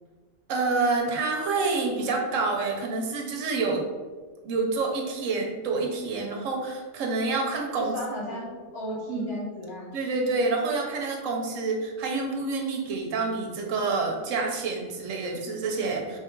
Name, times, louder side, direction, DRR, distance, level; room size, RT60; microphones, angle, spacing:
voice 1, 0.5-3.8 4.4-8.0 8.3-8.4 9.1-9.5 9.9-16.2, right 3 dB, 75° right, 1 dB, 1.1 m, -28 dB
voice 2, 7.7-9.9 11.2-11.8, left 1 dB, 40° left, -6 dB, 1.3 m, -36 dB
3.2 x 2.4 x 4.4 m, 1.4 s
omnidirectional pair, 1.4 m